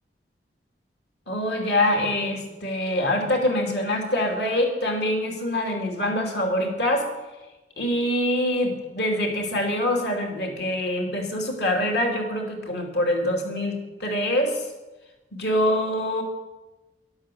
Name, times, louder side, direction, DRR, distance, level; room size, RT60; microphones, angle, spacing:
voice 1, 1.3-7.1 7.8-14.6 15.3-16.2, left 1 dB, 65° left, 2 dB, 2.9 m, -25 dB
12.5 x 12.0 x 7.8 m, 1.1 s
head